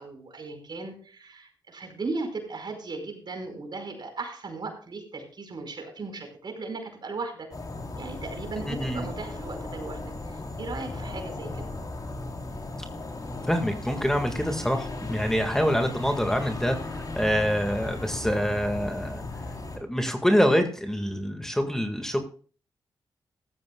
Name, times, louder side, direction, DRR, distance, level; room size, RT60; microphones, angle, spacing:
voice 1, 0.0-7.5 7.9-10.0 10.3-11.7, right 3 dB, 60° right, 5 dB, 4.9 m, -37 dB
sound 1, 7.5-19.8, left 2 dB, 50° left, 3.7 m, -36 dB
voice 2, 8.7-9.1 12.8-12.9 13.5-19.2 19.9-22.2, equal, 5° left, 5 dB, 1.9 m, -26 dB
15.5 x 13.5 x 2.3 m, 0.41 s
cardioid pair, 70°, 9 cm